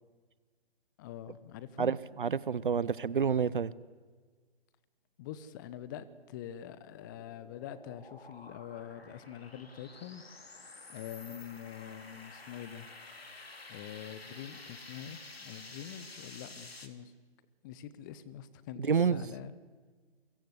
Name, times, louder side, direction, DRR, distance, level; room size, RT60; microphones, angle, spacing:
voice 1, 1.0-1.9 5.2-10.2 10.9-12.9 13.7-17.1 17.6-19.5, left 10 dB, 20° left, 1.0 m, -45 dB
voice 2, 1.8-3.7 18.8-19.3, right 6 dB, 55° right, 0.9 m, -29 dB
sound 1, 6.7-16.9, left 3 dB, 70° left, 3.2 m, -51 dB
29.5 x 24.0 x 8.2 m
figure-of-eight pair, 135°, 31 cm